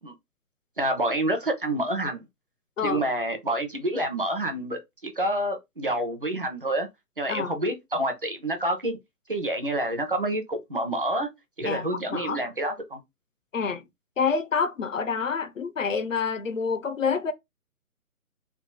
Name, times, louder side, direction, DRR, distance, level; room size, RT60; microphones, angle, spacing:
voice 1, 0.8-2.2 2.8-6.9 7.2-9.0 9.3-11.3 11.6-13.0, right 1 dB, 35° right, 0.7 m, -28 dB
voice 2, 11.6-12.4 13.5-13.8 14.2-17.3, left 5 dB, 60° left, 0.6 m, -27 dB
3.4 x 2.5 x 4.0 m
hypercardioid pair, 175°, 46 cm